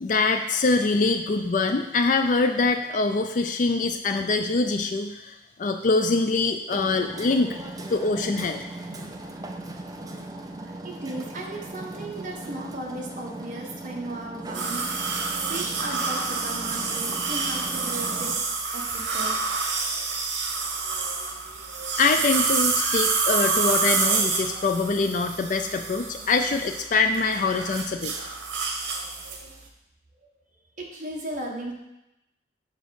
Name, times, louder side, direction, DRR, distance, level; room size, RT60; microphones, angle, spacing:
voice 1, 0.0-7.6 7.9-8.6 22.0-28.1, left 3 dB, 45° left, 6 dB, 0.4 m, -24 dB
Hammer, 6.7-18.4, right 2 dB, 20° right, 0.5 m, -38 dB
voice 2, 10.6-18.3 18.7-19.7 30.8-31.7, right 1 dB, 40° right, 0 dB, 1.2 m, -36 dB
sound 1, 14.5-29.5, right 4 dB, 80° right, 1.1 m, -28 dB
5.3 x 5.0 x 6.3 m, 0.92 s
head